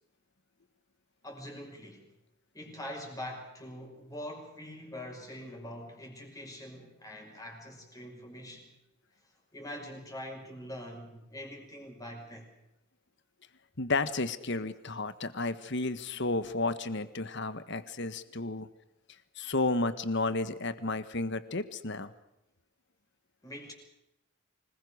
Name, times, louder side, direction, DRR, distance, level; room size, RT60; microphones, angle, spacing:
voice 1, 1.2-2.1 2.5-8.7 9.5-12.5 23.4-23.7, left 1 dB, 15° left, 1 dB, 5.7 m, -44 dB
voice 2, 13.8-18.7 19.4-22.1, left 3 dB, 55° left, 12 dB, 1.5 m, -32 dB
25.5 x 21.0 x 6.4 m, 0.88 s
head